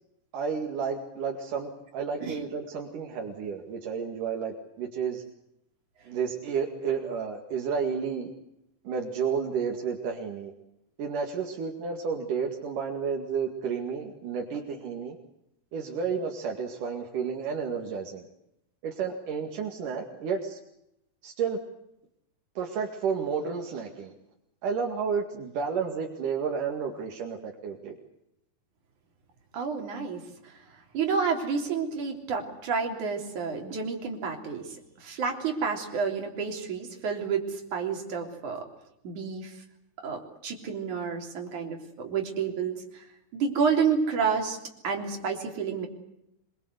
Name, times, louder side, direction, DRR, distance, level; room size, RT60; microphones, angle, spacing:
voice 1, 0.3-5.2 6.1-8.3 8.9-10.5 11.0-15.2 15.7-18.3 18.8-20.6 21.2-21.6 22.6-24.1 24.6-28.0, right 6 dB, 90° right, 2 dB, 3.7 m, -31 dB
voice 2, 29.5-30.2 30.9-34.8 35.0-38.7 39.0-39.5 40.0-43.0 43.3-44.6 44.8-45.9, right 5 dB, 70° right, 2 dB, 4.9 m, -30 dB
25.0 x 22.5 x 8.1 m, 0.82 s
omnidirectional pair, 3.6 m